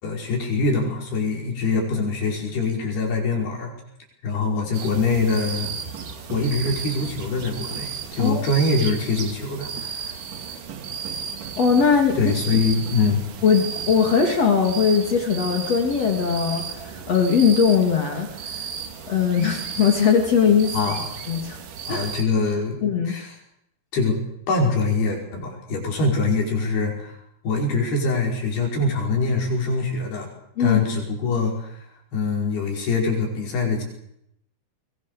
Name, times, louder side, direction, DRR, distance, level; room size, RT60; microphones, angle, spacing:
voice 1, 0.0-3.7 4.2-5.7 6.3-10.2 12.2-13.3 20.7-21.1 21.9-23.3 23.9-24.2 24.5-27.2 27.4-30.3 30.6-31.9 32.1-33.8, left 3 dB, 70° left, 1 dB, 7.5 m, -24 dB
sound 1, 4.7-22.2, right 7 dB, 55° right, 3.5 m, -34 dB
voice 2, 11.6-12.6 13.4-18.5 19.1-20.7 21.3-21.6 21.9-22.0 22.8-23.2 30.6-30.8, left 6 dB, 45° left, 3 dB, 3.2 m, -20 dB
23.5 x 22.0 x 6.9 m, 0.76 s
omnidirectional pair, 4.7 m